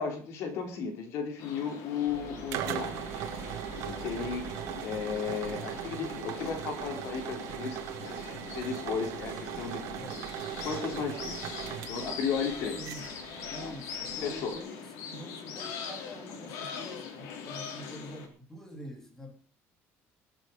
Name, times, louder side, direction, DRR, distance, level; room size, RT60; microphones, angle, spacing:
voice 1, 0.0-3.0 3.8-9.8 10.6-11.5 11.9-12.9 13.5-13.7 14.2-14.5, left 6 dB, 60° left, 5 dB, 3.6 m, -35 dB
sound 1, 1.4-18.3, left 6 dB, 85° left, 3.8 m, -42 dB
sound 2, 2.1-14.6, right 11 dB, 90° right, 2.1 m, -39 dB
voice 2, 10.0-10.3 12.7-13.1 13.5-19.3, equal, 5° left, 1 dB, 3.5 m, -46 dB
21.0 x 8.1 x 5.2 m, 0.39 s
cardioid pair, 180°, 5 cm